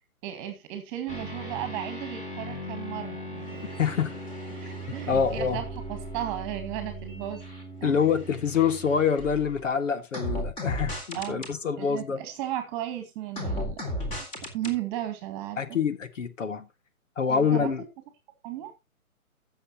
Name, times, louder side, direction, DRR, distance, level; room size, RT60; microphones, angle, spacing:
voice 1, 0.2-3.6 4.5-7.4 7.8-8.1 11.1-11.5 11.8-13.9 14.2-15.6 17.3-17.9 18.4-18.7, right 12 dB, 20° right, 2.0 m, -35 dB
sound 1, 1.1-9.6 10.1-11.5 13.4-14.8, equal, 15° left, 2.5 m, -36 dB
voice 2, 3.8-4.1 4.9-5.6 7.8-12.2 15.6-16.7 17.2-17.8, left 6 dB, 60° left, 1.7 m, -26 dB
15.5 x 7.1 x 3.0 m
hypercardioid pair, 145°, 43 cm